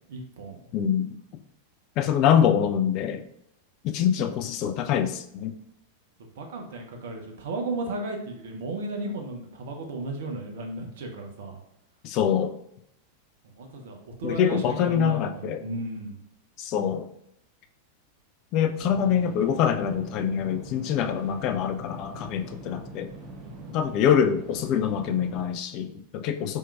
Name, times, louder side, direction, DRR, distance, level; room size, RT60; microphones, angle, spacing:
voice 1, 0.1-0.6 6.4-11.6 13.6-16.2, right 2 dB, 60° right, 3 dB, 0.7 m, -34 dB
voice 2, 0.7-1.2 2.0-3.2 3.8-5.6 12.0-12.6 14.2-15.6 16.6-17.1 18.5-23.1 23.7-26.6, left 8 dB, 40° left, 7 dB, 0.4 m, -25 dB
sound 1, 18.8-25.4, right 2 dB, 30° right, 1.0 m, -42 dB
4.4 x 3.6 x 2.4 m, 0.74 s
figure-of-eight pair, 90°, 0 cm